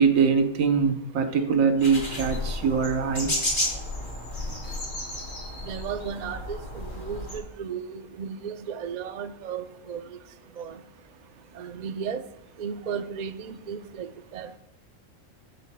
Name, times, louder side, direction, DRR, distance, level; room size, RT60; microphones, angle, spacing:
voice 1, 0.0-3.3, right 5 dB, 80° right, 5 dB, 1.4 m, -22 dB
sound 1, 1.8-7.4, left 1 dB, 35° left, 2.5 m, -32 dB
voice 2, 5.6-10.2 10.6-10.8 11.6-12.2 12.6-14.6, right 7 dB, 60° right, 9 dB, 0.4 m, -35 dB
13.0 x 9.3 x 2.2 m, 0.83 s
omnidirectional pair, 1.4 m